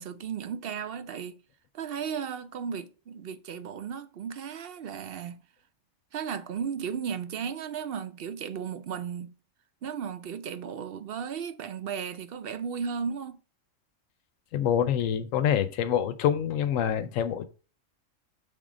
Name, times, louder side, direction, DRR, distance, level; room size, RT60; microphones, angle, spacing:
voice 1, 0.0-1.4 1.7-5.4 6.1-9.3 9.8-13.4, right 7 dB, 60° right, 0.7 m, -35 dB
voice 2, 14.5-17.5, left 9 dB, 85° left, 1.0 m, -26 dB
6.6 x 3.7 x 5.0 m
omnidirectional pair, 1.3 m